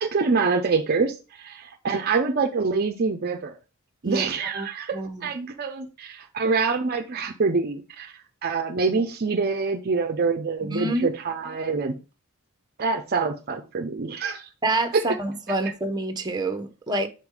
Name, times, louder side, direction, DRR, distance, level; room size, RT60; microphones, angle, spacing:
voice 1, 0.0-3.6 4.0-12.0 12.8-14.5 14.9-15.1 15.6-15.7, right 4 dB, 45° right, 0.5 m, -26 dB
voice 2, 4.9-5.3 10.6-11.1 14.6-17.1, right 2 dB, 20° right, 0.8 m, -27 dB
5.3 x 4.4 x 4.8 m
head